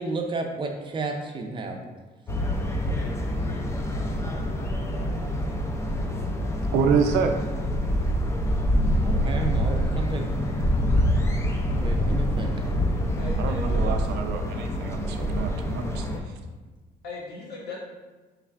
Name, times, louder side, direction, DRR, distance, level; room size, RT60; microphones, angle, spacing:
voice 1, 0.0-1.8 9.0-10.3 11.8-12.5, right 3 dB, 30° right, 3 dB, 0.5 m, -32 dB
sound 1, 2.3-16.2, equal, 15° left, 0.4 m, -26 dB
voice 2, 6.7-7.4 13.4-16.1, right 5 dB, 80° right, 5 dB, 0.5 m, -26 dB
voice 3, 13.2-14.0 17.0-17.8, left 2 dB, 70° left, -4 dB, 1.0 m, -38 dB
4.2 x 3.2 x 2.4 m, 1.2 s
cardioid pair, 110°, 17 cm